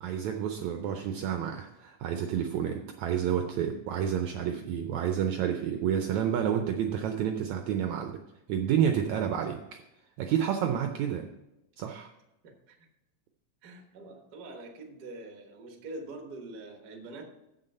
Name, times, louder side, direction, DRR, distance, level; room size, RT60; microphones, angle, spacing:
voice 1, 0.0-8.2 8.5-9.6 10.2-11.3 11.8-12.1, right 9 dB, 80° right, 5 dB, 1.7 m, -29 dB
voice 2, 12.4-12.9 13.6-17.3, right 2 dB, 55° right, 4 dB, 1.0 m, -44 dB
7.9 x 7.9 x 5.4 m, 0.94 s
omnidirectional pair, 3.9 m